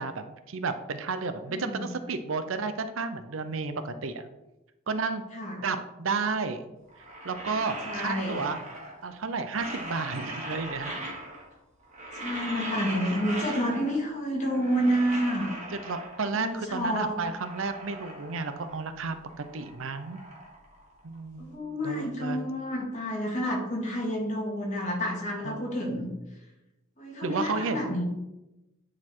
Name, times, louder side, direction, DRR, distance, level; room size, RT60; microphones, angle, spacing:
voice 1, 0.0-4.3 4.9-5.2 5.6-6.6 7.2-8.6 9.0-10.9 15.7-20.2 21.0-21.5 21.8-22.4 25.4-25.7 27.2-28.0, right 4 dB, 75° right, 10 dB, 0.6 m, -32 dB
voice 2, 1.5-1.9 5.3-5.6 7.8-8.4 12.1-15.5 16.3-17.1 21.4-26.1 27.0-28.0, equal, 35° left, -2 dB, 2.1 m, -29 dB
sound 1, 6.9-9.1 9.4-11.5 11.8-14.1 14.3-16.4 16.9-18.9 19.2-21.4, right 1 dB, 35° right, 1.8 m, -39 dB
9.8 x 4.2 x 4.5 m, 0.98 s
head